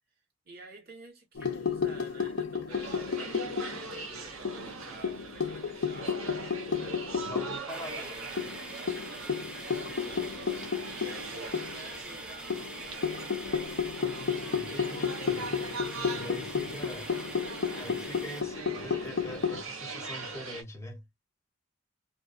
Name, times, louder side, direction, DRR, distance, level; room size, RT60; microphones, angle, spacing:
voice 1, 0.4-7.0 7.9-8.6 8.9-13.4 17.2-17.4, right 3 dB, 50° right, 1.2 m, -51 dB
sound 1, 1.3-4.0 4.4-7.6 7.9-8.0 8.4-11.9 12.5-19.6, left 6 dB, 65° left, 0.5 m, -33 dB
sound 2, 2.7-20.6, right 3 dB, 85° right, 0.8 m, -42 dB
voice 2, 7.2-8.1 14.5-15.8 16.1-17.2 17.7-21.1, equal, 15° left, 0.8 m, -44 dB
sound 3, 7.7-18.4, equal, 5° right, 0.3 m, -45 dB
2.5 x 2.2 x 2.4 m
head